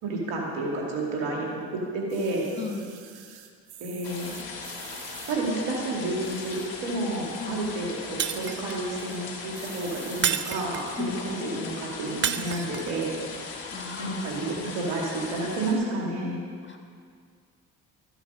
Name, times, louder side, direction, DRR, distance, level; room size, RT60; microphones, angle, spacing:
voice 1, 0.0-2.5 3.8-4.4 5.3-13.2 14.0-16.4, right 2 dB, 90° right, -2 dB, 2.3 m, -30 dB
sound 1, 2.1-5.4 6.1-6.8 7.3-7.4 7.6-7.7 8.0-8.5 9.0-9.2 9.5-10.3 11.0-11.1, right 9 dB, 70° right, 1.1 m, -47 dB
voice 2, 2.6-3.0 7.4-7.6 11.0-11.2 13.5-14.7 16.6-16.8, left 3 dB, 30° left, 4 dB, 1.5 m, -36 dB
sound 2, 4.0-15.7, left 4 dB, 70° left, 2.0 m, -39 dB
Shatter, 8.2-8.9 10.2-11.0 12.2-13.0, right 9 dB, 30° right, 0.4 m, -29 dB
13.0 x 8.0 x 5.5 m, 2.1 s
supercardioid pair, 60°, 38 cm